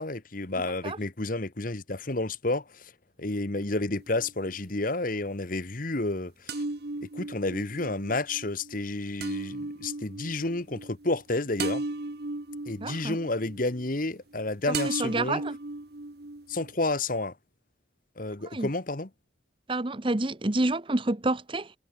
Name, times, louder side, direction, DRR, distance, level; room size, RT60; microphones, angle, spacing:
voice 1, 0.0-2.9 3.2-6.6 7.0-11.8 12.7-15.4 16.5-17.3 18.2-19.1, left 2 dB, 45° left, 1.4 m, -30 dB
sound 1, 4.0-4.9 6.5-14.4 14.7-16.8, right 2 dB, 55° right, 1.2 m, -36 dB
voice 2, 12.8-13.2 14.8-15.6 18.5-18.7 19.7-21.7, right 2 dB, 25° right, 0.9 m, -28 dB
head